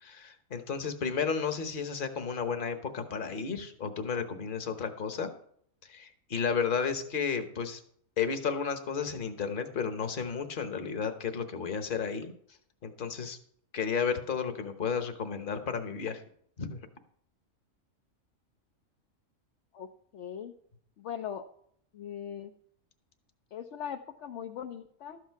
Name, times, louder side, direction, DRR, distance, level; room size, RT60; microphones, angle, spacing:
voice 1, 0.0-5.3 5.8-7.8 8.2-12.3 12.8-13.4 13.7-16.2 16.6-16.8, left 6 dB, 40° left, 8 dB, 1.2 m, -32 dB
voice 2, 19.7-20.5 21.0-21.5 21.9-22.5 23.5-25.2, left 9 dB, 65° left, 4 dB, 0.9 m, -40 dB
12.5 x 8.3 x 4.6 m, 0.64 s
omnidirectional pair, 1.4 m